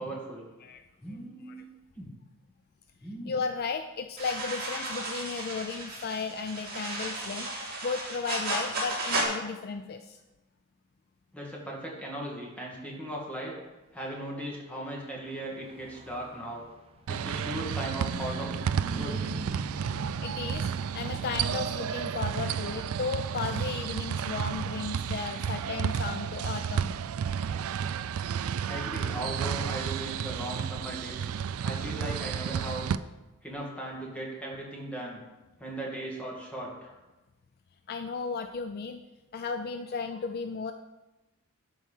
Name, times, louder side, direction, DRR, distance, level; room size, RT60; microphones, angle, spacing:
voice 1, 0.0-0.5 1.0-2.1 3.0-3.3 11.3-13.5 13.9-16.6 17.1-18.6 18.8-19.4 28.7-31.3 31.6-32.9 33.4-35.2 35.6-36.9, right 1 dB, 5° left, -3 dB, 2.2 m, -38 dB
voice 2, 3.3-10.2 20.2-26.9 37.9-39.0 39.3-40.7, left 5 dB, 45° left, 8 dB, 0.4 m, -35 dB
sound 1, 4.2-9.2, right 2 dB, 45° right, 2.8 m, -34 dB
Car passing by / Truck, 14.6-28.3, right 1 dB, 25° right, 0.7 m, -46 dB
sound 2, 17.1-33.0, right 7 dB, 70° right, 0.4 m, -32 dB
12.0 x 4.7 x 5.6 m, 1.1 s
head